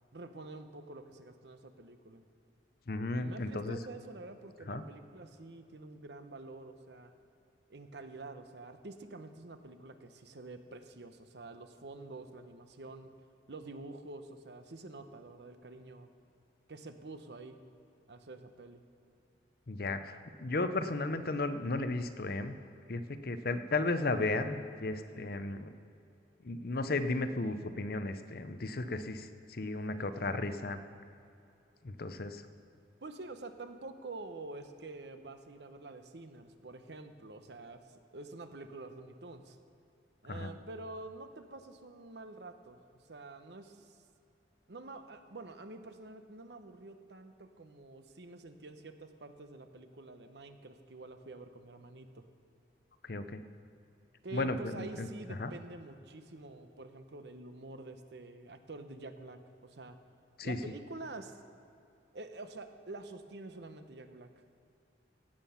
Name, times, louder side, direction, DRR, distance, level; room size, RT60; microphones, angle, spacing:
voice 1, 0.1-2.2 3.1-7.1 7.7-13.1 13.5-16.1 16.7-17.6 18.1-18.8 33.0-39.6 40.2-44.0 44.7-52.2 54.2-60.0 60.4-61.4 62.1-64.3, right 2 dB, 65° right, 8 dB, 0.9 m, -47 dB
voice 2, 2.9-3.8 4.7-4.8 19.7-22.5 22.9-25.7 26.4-30.8 31.8-32.4 40.3-40.5 53.0-53.4 54.3-55.1 55.4-55.5 60.4-60.6, left 2 dB, 55° left, 10 dB, 0.7 m, -34 dB
16.0 x 8.9 x 5.8 m, 2.7 s
head